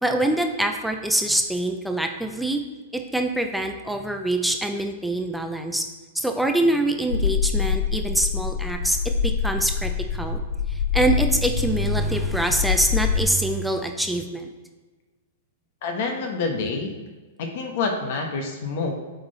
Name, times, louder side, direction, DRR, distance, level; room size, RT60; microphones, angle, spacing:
voice 1, 0.0-2.6 2.9-5.8 6.1-9.0 9.2-10.4 10.7-14.5, right 1 dB, ahead, 4 dB, 0.6 m, -24 dB
sound 1, 7.1-13.2, left 6 dB, 80° left, 0.4 m, -25 dB
voice 2, 15.8-16.9 17.4-18.9, left 4 dB, 60° left, 3 dB, 1.1 m, -27 dB
7.0 x 3.8 x 4.0 m, 1.3 s
hypercardioid pair, 130°, 0 cm